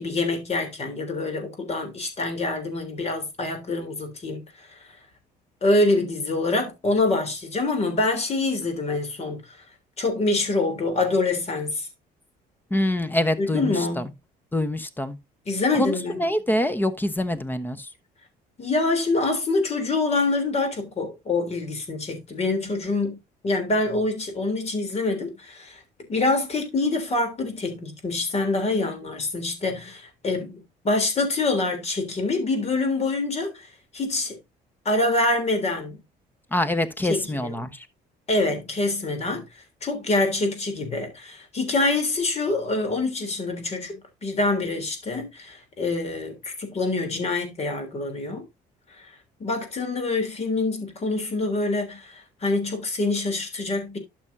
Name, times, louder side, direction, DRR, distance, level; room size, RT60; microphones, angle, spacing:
voice 1, 0.0-4.8 5.6-9.4 10.0-11.9 13.4-14.1 15.5-16.2 18.6-23.2 23.4-25.8 26.1-33.7 33.9-34.3 34.8-36.0 37.1-37.5 38.3-39.4 39.8-48.4 49.0-49.1 49.4-54.0, left 2 dB, 40° left, 3.4 m, -25 dB
voice 2, 12.7-14.1 14.5-15.2 15.8-17.9 36.5-37.9, left 1 dB, 10° left, 1.0 m, -25 dB
11.5 x 6.3 x 2.7 m
cardioid pair, 110°, 17 cm